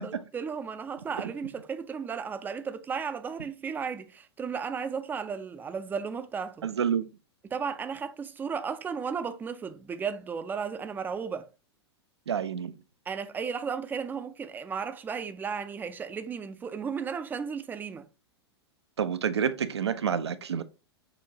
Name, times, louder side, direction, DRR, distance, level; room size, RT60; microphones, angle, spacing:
voice 1, 0.0-6.7 7.4-11.5 13.1-18.1, right 6 dB, 15° right, 0.4 m, -34 dB
voice 2, 6.6-7.1 12.3-12.7 19.0-20.6, right 7 dB, 75° right, 0.5 m, -28 dB
6.7 x 2.5 x 2.7 m
figure-of-eight pair, 100°, 14 cm